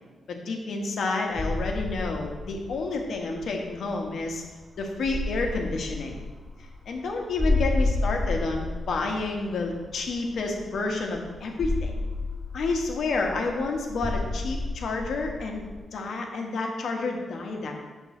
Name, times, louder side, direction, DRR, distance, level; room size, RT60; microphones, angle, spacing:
voice 1, 0.3-4.4 4.8-6.2 6.6-11.9 12.5-15.6 15.9-17.9, left 3 dB, 70° left, 2 dB, 1.1 m, -30 dB
sound 1, 1.3-15.8, left 2 dB, 5° left, 1.0 m, -31 dB
6.0 x 3.6 x 5.8 m, 1.3 s
cardioid pair, 70°, 0 cm